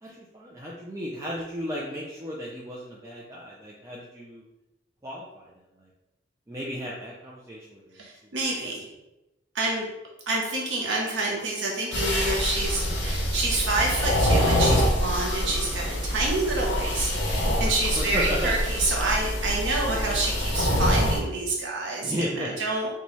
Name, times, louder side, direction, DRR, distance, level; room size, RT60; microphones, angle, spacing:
voice 1, 0.0-4.4 5.0-5.5 6.5-8.0 8.6-8.7 17.6-18.6 19.8-20.3 22.0-22.5, equal, 15° right, -5 dB, 0.4 m, -34 dB
voice 2, 8.0-8.8 9.5-9.9 10.3-22.9, right 2 dB, 75° right, -2 dB, 0.7 m, -28 dB
sound 1, 11.9-21.2, equal, 75° left, 0.7 m, -25 dB
4.0 x 2.2 x 3.0 m, 0.96 s
head